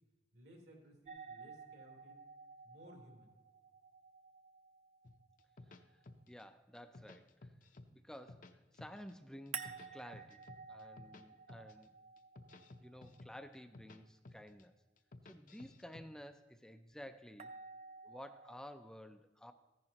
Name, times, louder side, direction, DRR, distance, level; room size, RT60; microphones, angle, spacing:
voice 1, 0.3-2.2 2.6-3.3, equal, 80° right, 0 dB, 3.1 m, -59 dB
sound 1, 1.1-6.0 9.5-13.6 17.4-18.6, right 6 dB, 40° right, 0.6 m, -52 dB
sound 2, 5.0-6.4 6.7-7.9 8.1-9.1 9.5-11.2 11.5-11.8 12.2-14.0 14.2-14.6 15.0-16.0, left 2 dB, 50° left, 0.7 m, -55 dB
voice 2, 5.9-7.5 7.9-10.4 10.7-11.9 12.8-14.7 15.3-17.5 18.0-19.5, equal, 5° left, 8 dB, 0.4 m, -53 dB
14.5 x 10.5 x 2.9 m, 1.2 s
head